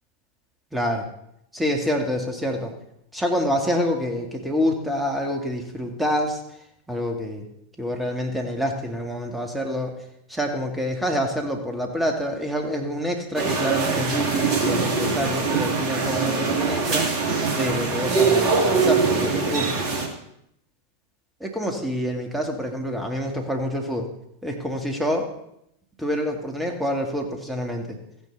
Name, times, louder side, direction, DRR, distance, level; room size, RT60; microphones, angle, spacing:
voice 1, 0.7-1.0 1.5-2.7 3.1-6.4 6.9-7.5 7.8-9.9 10.3-17.1 17.5-19.8 21.4-24.1 24.4-25.3 26.0-28.0, equal, 5° right, 3 dB, 2.2 m, -27 dB
sound 1, 13.4-20.1, right 4 dB, 35° right, 2.4 m, -23 dB
14.5 x 9.9 x 4.1 m, 0.78 s
figure-of-eight pair, 90°, 0 cm